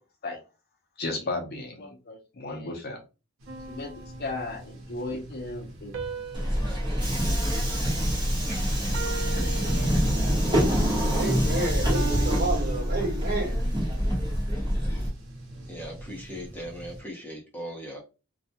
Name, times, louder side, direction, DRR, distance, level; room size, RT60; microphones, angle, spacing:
voice 1, 1.0-3.0 3.7-3.9 4.2-5.9, left 2 dB, 50° left, 0.5 m, -34 dB
sound 1, 3.4-17.0, right 1 dB, 85° right, 0.8 m, -44 dB
sound 2, 3.5-4.9 5.9-8.4 8.9-10.5 11.9-13.6, right 6 dB, 65° right, 0.5 m, -39 dB
Subway metro underground, 6.3-15.1, equal, 20° right, 0.9 m, -25 dB
voice 2, 11.1-13.6, right 2 dB, 45° right, 1.1 m, -30 dB
voice 3, 15.7-18.0, equal, 10° left, 0.7 m, -39 dB
2.3 x 2.1 x 2.7 m
head